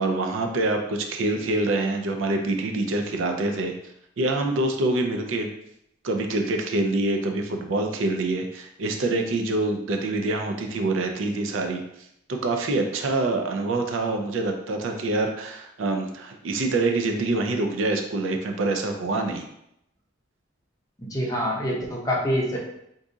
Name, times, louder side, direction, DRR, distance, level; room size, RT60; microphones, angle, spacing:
voice 1, 0.0-3.7 4.2-5.5 6.0-11.8 12.3-19.5, right 2 dB, 75° right, 4 dB, 0.4 m, -25 dB
voice 2, 21.0-22.6, equal, 20° left, -3 dB, 0.6 m, -26 dB
2.6 x 2.4 x 3.8 m, 0.77 s
head